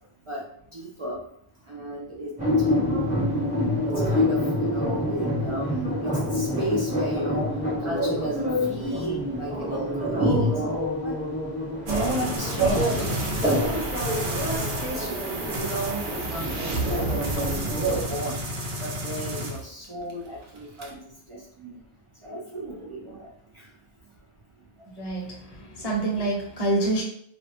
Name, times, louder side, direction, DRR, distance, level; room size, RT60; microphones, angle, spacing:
voice 1, 0.3-2.7 3.3-7.5 7.8-11.3 11.8-18.5 18.8-21.8 22.1-24.3 24.6-25.1, right 1 dB, 50° right, -4 dB, 0.4 m, -35 dB
sound 1, 2.4-18.0, left 1 dB, 10° right, 0.6 m, -27 dB
sound 2, 11.9-20.1 20.4-20.9, right 1 dB, 75° right, 0.8 m, -30 dB
voice 2, 25.0-25.4 25.8-27.0, right 2 dB, 40° left, -2 dB, 0.8 m, -26 dB
2.5 x 2.0 x 2.9 m, 0.66 s
omnidirectional pair, 1.1 m